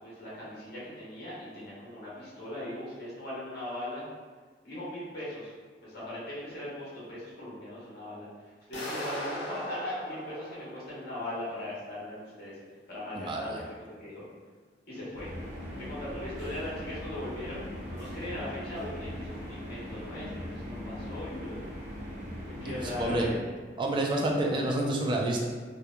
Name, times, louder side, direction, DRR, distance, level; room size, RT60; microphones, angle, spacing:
voice 1, 0.0-4.0 4.6-5.5 5.8-12.6 12.9-13.7 14.0-14.2 14.9-15.3 15.8-21.6 22.4-23.4, left 1 dB, 60° left, -8 dB, 1.0 m, -39 dB
sound 1, 8.7-11.6, equal, 90° left, 0.9 m, -39 dB
voice 2, 13.1-13.6 22.6-23.3 23.8-25.5, right 1 dB, 25° right, 0 dB, 0.3 m, -29 dB
sound 2, 15.1-23.3, equal, 40° right, 0.9 m, -40 dB
2.8 x 2.1 x 2.3 m, 1.5 s
head